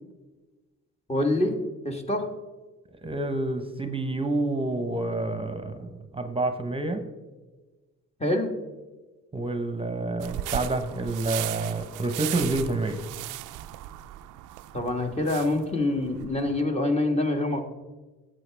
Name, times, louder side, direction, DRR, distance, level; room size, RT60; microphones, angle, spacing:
voice 1, 1.1-1.6 1.8-2.3 8.2-8.5 14.7-17.6, left 2 dB, 20° left, 3 dB, 1.5 m, -25 dB
voice 2, 3.0-7.0 9.3-13.0, right 2 dB, 20° right, 8 dB, 1.0 m, -28 dB
sound 1, 10.2-16.6, right 14 dB, 90° right, 0.5 m, -37 dB
12.0 x 7.7 x 3.4 m, 1.2 s
cardioid pair, 90°, 30 cm